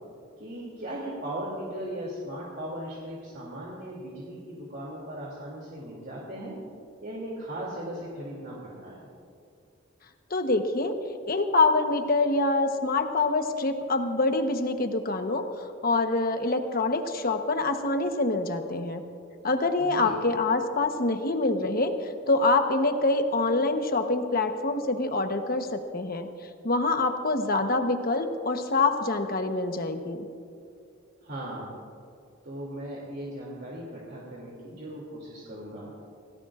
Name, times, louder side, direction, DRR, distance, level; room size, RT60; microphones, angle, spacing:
voice 1, 0.4-6.5 7.0-9.0 19.8-20.2 31.2-31.8 32.4-35.9, right 1 dB, 55° right, -4 dB, 2.8 m, -38 dB
voice 2, 10.3-10.9 11.3-19.0 19.4-26.3 26.6-30.3, left 2 dB, 45° left, 6 dB, 1.0 m, -25 dB
27.0 x 17.5 x 2.5 m, 2.4 s
head